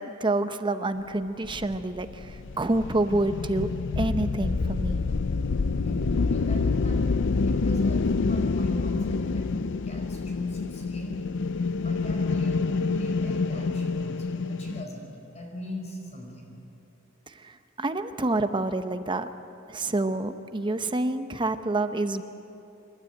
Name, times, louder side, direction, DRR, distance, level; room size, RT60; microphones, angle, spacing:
voice 1, 0.0-3.7 4.0-5.0 17.3-19.3 19.7-22.2, right 2 dB, 25° right, 9 dB, 0.8 m, -28 dB
sound 1, 1.4-14.8, left 4 dB, 60° left, 0.5 m, -27 dB
voice 2, 5.8-7.0 7.4-11.1 11.8-16.5, equal, 35° left, 1 dB, 5.1 m, -39 dB
28.0 x 12.5 x 9.0 m, 2.8 s
head